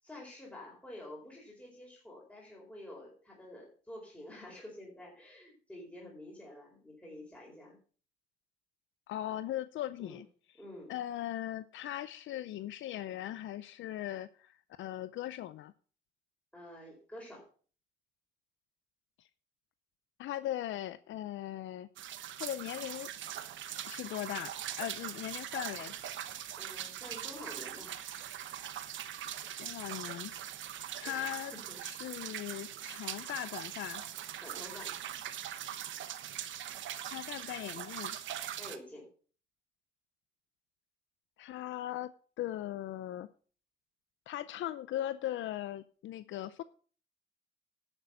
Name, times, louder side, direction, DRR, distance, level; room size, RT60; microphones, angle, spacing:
voice 1, 0.0-7.8 10.0-10.2 10.6-10.9 16.5-17.4 26.6-28.0 31.0-31.8 34.4-34.9 38.6-39.1, left 1 dB, 5° left, -3 dB, 4.6 m, -49 dB
voice 2, 9.1-10.3 10.9-15.7 19.2-19.3 20.2-21.9 22.4-23.1 23.9-25.9 29.6-30.3 31.0-31.5 31.8-34.0 37.0-38.2 41.4-43.3 44.3-46.6, left 13 dB, 75° left, 14 dB, 0.5 m, -39 dB
sound 1, 22.0-38.8, right 11 dB, 70° right, 1.0 m, -41 dB
11.0 x 6.6 x 5.7 m, 0.42 s
cardioid pair, 90°, 20 cm